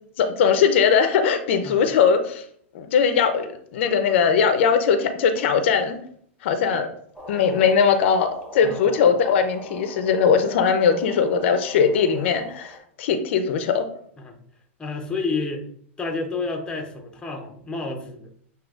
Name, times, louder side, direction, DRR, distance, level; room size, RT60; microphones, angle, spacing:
voice 1, 0.2-2.4 2.7-6.0 6.4-6.9 7.3-13.9, left 6 dB, 65° left, 8 dB, 0.6 m, -20 dB
sound 1, 7.1-12.8, right 1 dB, 5° right, 1.4 m, -42 dB
voice 2, 8.6-9.0 14.2-14.4 14.8-15.6 16.0-18.3, left 3 dB, 15° left, 4 dB, 0.8 m, -30 dB
7.7 x 2.8 x 2.4 m, 0.62 s
hypercardioid pair, 125°, 7 cm